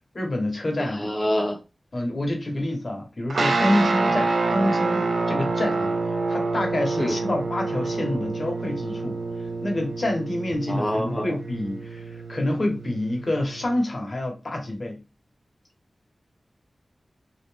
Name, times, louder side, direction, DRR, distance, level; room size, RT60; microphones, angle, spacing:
voice 1, 0.1-1.1 1.9-9.2 9.6-15.0, left 1 dB, 50° left, 1.2 m, -27 dB
voice 2, 0.9-1.6 7.0-7.2 10.7-11.4, left 1 dB, 15° left, 0.6 m, -26 dB
sound 1, 3.3-13.8, right 3 dB, 90° right, 0.5 m, -27 dB
3.0 x 2.6 x 3.4 m
wide cardioid pair, 70°, 0 cm